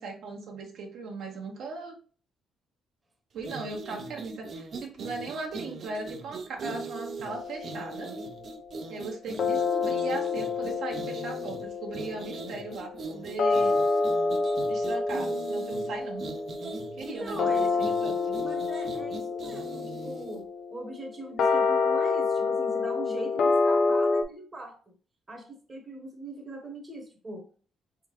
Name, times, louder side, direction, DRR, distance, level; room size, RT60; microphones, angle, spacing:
voice 1, 0.0-1.9 3.3-8.1 8.9-13.7 14.7-16.2 17.0-18.3, right 3 dB, 75° right, 1 dB, 1.1 m, -38 dB
sound 1, 3.4-20.4, right 4 dB, 55° right, 0.6 m, -40 dB
sound 2, 7.3-8.6 9.4-24.2, left 4 dB, 65° left, 0.6 m, -28 dB
voice 2, 17.0-17.7 18.4-24.9 25.3-27.5, right 1 dB, 25° right, 3 dB, 1.0 m, -41 dB
3.6 x 3.5 x 3.0 m, 0.40 s
cardioid pair, 90°, 0 cm